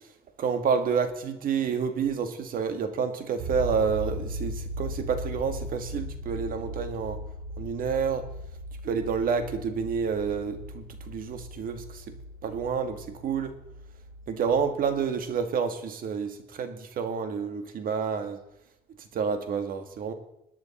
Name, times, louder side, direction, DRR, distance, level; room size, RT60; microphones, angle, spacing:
voice 1, 0.4-7.2 7.6-8.3 8.8-12.1 12.4-13.5 14.3-18.4 19.0-20.1, right 6 dB, 55° right, 8 dB, 1.6 m, -29 dB
sound 1, 3.4-15.3, equal, 90° right, 3.2 m, -38 dB
21.5 x 9.6 x 4.2 m, 0.84 s
cardioid pair, 110°, 17 cm